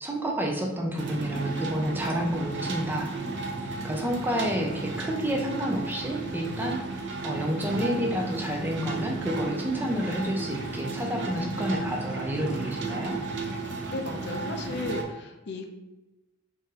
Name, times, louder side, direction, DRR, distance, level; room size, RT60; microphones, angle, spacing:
voice 1, 0.0-3.2 3.8-6.9 7.2-13.2, equal, 10° right, 0 dB, 0.5 m, -29 dB
sound 1, 1.0-15.0, right 3 dB, 60° right, 0.6 m, -34 dB
voice 2, 13.9-15.6, left 2 dB, 55° left, 4 dB, 0.5 m, -35 dB
3.8 x 2.6 x 3.9 m, 1.0 s
head